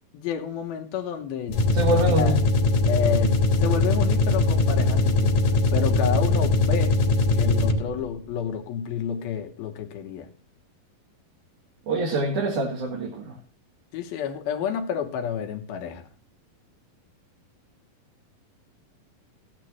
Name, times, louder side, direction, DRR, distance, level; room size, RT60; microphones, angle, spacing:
voice 1, 0.1-1.6 1.9-2.4 2.9-5.4 5.7-7.0 7.3-10.3 13.9-16.0, left 8 dB, 85° left, 3.0 m, -30 dB
sound 1, 1.5-8.0, left 2 dB, 65° left, 2.3 m, -21 dB
voice 2, 1.7-2.4 11.9-13.3, right 1 dB, 60° right, 2.9 m, -25 dB
14.5 x 9.7 x 3.1 m
omnidirectional pair, 4.2 m